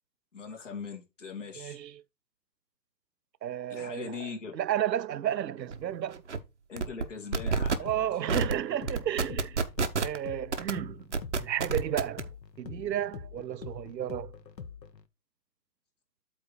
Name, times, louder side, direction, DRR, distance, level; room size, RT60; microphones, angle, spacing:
voice 1, 0.3-1.8 3.7-4.5 6.7-7.9, left 5 dB, 45° left, 2.6 m, -40 dB
voice 2, 1.6-2.0 3.4-4.3 4.5-6.2 7.8-9.6 10.0-11.0 11.4-12.3 12.6-14.3, right 11 dB, 85° right, 0.7 m, -32 dB
sound 1, 5.7-5.8 6.1-6.4 6.8-7.1 7.3-7.8 8.3-8.5 8.9-10.2 10.5-10.7 11.1-12.2, right 4 dB, 45° right, 0.8 m, -28 dB
sound 2, 7.4-15.0, left 6 dB, 85° left, 1.2 m, -45 dB
8.3 x 3.2 x 6.5 m
hypercardioid pair, 175°, 49 cm